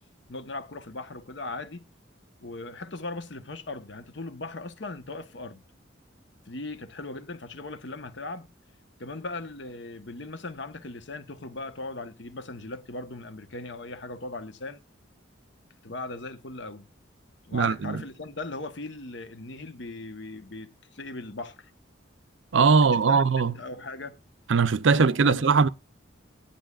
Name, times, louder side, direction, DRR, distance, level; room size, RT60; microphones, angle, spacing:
voice 1, 0.3-1.9 2.4-5.6 6.5-8.5 9.0-14.8 15.8-16.9 17.5-21.7 22.9-23.2 23.5-24.2 24.9-25.7, left 2 dB, 65° left, 1.0 m, -38 dB
voice 2, 17.5-18.0 22.5-23.6 24.5-25.7, right 5 dB, 75° right, 0.6 m, -20 dB
17.0 x 10.5 x 2.4 m
head